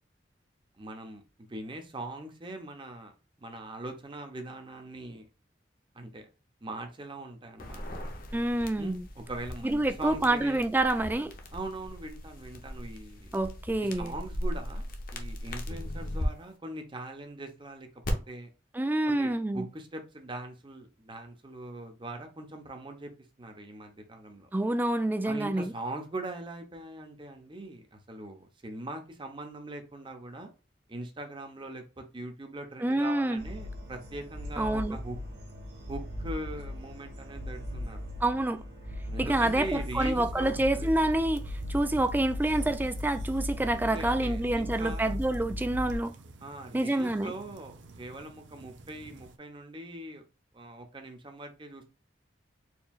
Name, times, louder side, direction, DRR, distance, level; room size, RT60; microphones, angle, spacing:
voice 1, 0.8-3.1 3.4-5.3 5.9-6.3 6.6-8.0 8.8-10.7 11.5-13.3 13.8-18.5 19.0-23.1 23.4-24.5 25.2-30.5 30.9-35.2 35.9-38.1 39.1-40.9 43.8-45.2 46.4-50.2 50.5-51.8, right 2 dB, 25° right, 0.8 m, -41 dB
sound 1, 7.6-16.3 18.0-18.1, equal, 50° left, 0.7 m, -38 dB
voice 2, 8.3-9.1 9.6-11.3 13.3-14.1 18.7-19.7 24.5-25.7 32.8-33.4 34.6-35.0 38.2-38.6 39.2-41.4 41.7-46.1 46.7-47.3, right 1 dB, 10° right, 0.4 m, -27 dB
sound 2, 33.4-46.0, left 1 dB, 60° right, 1.3 m, -38 dB
sound 3, 39.4-49.4, right 2 dB, 85° right, 0.6 m, -51 dB
4.4 x 3.1 x 2.3 m
head